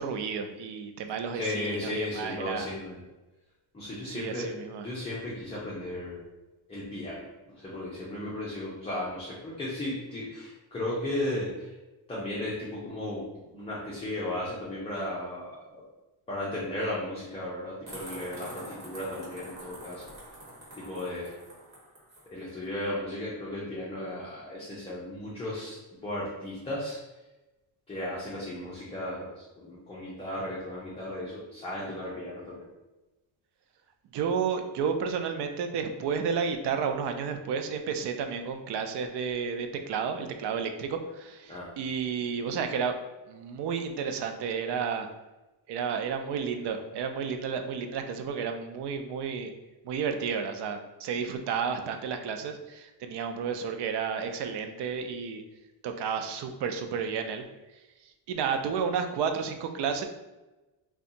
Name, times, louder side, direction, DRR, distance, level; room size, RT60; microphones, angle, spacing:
voice 1, 0.0-2.7 4.1-4.9 34.1-42.9 43.3-45.1 45.7-49.5 49.8-55.4 55.8-57.4 58.3-60.0, right 6 dB, 60° right, 6 dB, 0.5 m, -31 dB
voice 2, 1.3-3.0 3.7-4.5 4.8-6.2 6.7-11.7 12.1-15.8 16.3-20.0 20.7-21.3 22.3-27.0 27.9-32.7 41.5-41.7, left 1 dB, 15° left, -7 dB, 0.6 m, -35 dB
sound 1, 17.9-22.3, right 1 dB, 40° right, 1.4 m, -45 dB
2.6 x 2.3 x 3.8 m, 1.1 s
cardioid pair, 130°, 47 cm